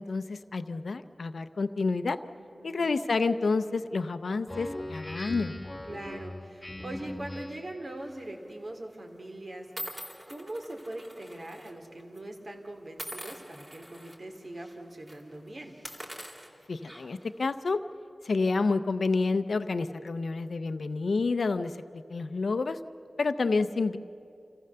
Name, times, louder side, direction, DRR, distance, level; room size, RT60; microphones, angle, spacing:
voice 1, 0.0-2.2 2.6-5.6 16.7-17.8 18.2-22.8 23.2-24.0, left 3 dB, 85° left, 10 dB, 0.5 m, -29 dB
voice 2, 2.4-2.9 5.8-9.7 10.3-15.8, right 1 dB, 55° right, 3 dB, 2.6 m, -42 dB
Speech synthesizer, 4.5-7.8, left 1 dB, 25° left, 1.2 m, -40 dB
sound 1, 8.1-8.4 9.1-9.2 9.8-11.7 12.0-12.2 13.0-14.2 14.6-14.7 15.0-15.2 15.7-17.3, equal, 30° right, 3.3 m, -43 dB
27.0 x 15.0 x 6.7 m, 2.6 s
cardioid pair, 45°, 0 cm